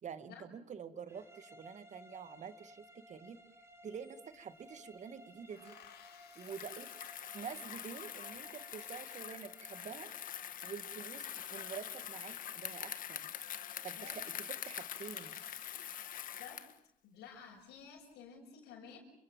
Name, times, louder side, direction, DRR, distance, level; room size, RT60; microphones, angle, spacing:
voice 1, 0.0-3.4 3.8-5.8 6.4-6.9 7.3-10.1 10.6-11.2 11.5-13.3 13.8-14.2 14.6-15.4, right 7 dB, 45° right, 11 dB, 2.0 m, -47 dB
sound 1, 1.1-10.5, equal, 15° right, 6.7 m, -59 dB
sound 2, 3.4-3.5 3.7-4.7 5.5-8.0 10.7-11.7 12.8-13.2 13.5-13.6 14.0-14.1 14.3-16.9 17.5-18.1, left 11 dB, 70° left, 2.3 m, -61 dB
Bicycle, 6.3-16.8, left 10 dB, 55° left, 1.7 m, -45 dB
voice 2, 17.0-19.0, left 7 dB, 85° left, -1 dB, 6.3 m, -52 dB
29.0 x 25.5 x 7.4 m, 0.74 s
cardioid pair, 110°, 17 cm